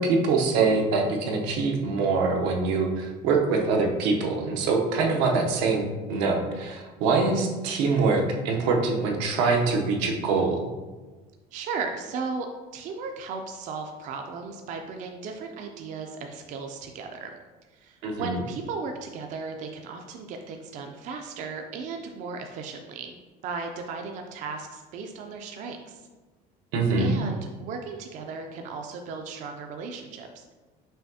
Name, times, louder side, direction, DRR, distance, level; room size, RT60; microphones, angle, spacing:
voice 1, 0.0-10.6 18.0-18.4 26.7-27.1, right 4 dB, 85° right, 1 dB, 0.7 m, -24 dB
voice 2, 11.5-12.5 12.7-17.3 17.7-23.2 23.4-26.0 27.0-30.5, right 4 dB, 45° right, 4 dB, 0.4 m, -36 dB
5.5 x 2.7 x 2.7 m, 1.2 s
cardioid pair, 150°, 17 cm